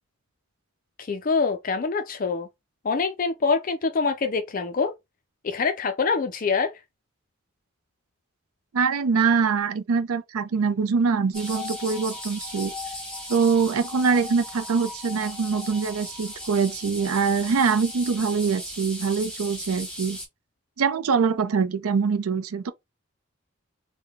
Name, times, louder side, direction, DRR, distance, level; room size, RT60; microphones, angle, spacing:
voice 1, 1.0-2.5 2.8-4.9 5.4-6.7, left 4 dB, 40° left, 0.4 m, -25 dB
voice 2, 8.7-12.7 13.3-20.2 20.8-22.7, right 5 dB, 85° right, 0.5 m, -24 dB
sound 1, 11.3-20.3, left 1 dB, 5° left, 1.4 m, -37 dB
3.7 x 2.2 x 3.4 m
head